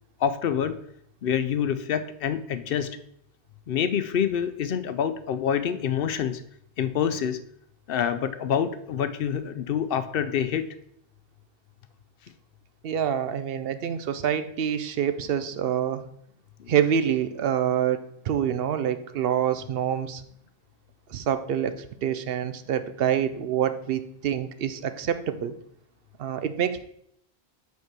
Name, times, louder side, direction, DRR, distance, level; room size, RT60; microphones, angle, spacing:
voice 1, 0.2-0.8 1.2-2.9 3.7-6.4 6.8-7.4 7.9-10.6 16.6-16.7, left 8 dB, 65° left, 11 dB, 0.7 m, -26 dB
voice 2, 12.8-16.0 16.7-18.0 18.3-20.2 21.1-21.8 22.0-25.5 26.2-26.8, right 9 dB, 70° right, 11 dB, 0.7 m, -26 dB
5.4 x 4.6 x 6.0 m, 0.71 s
omnidirectional pair, 1.1 m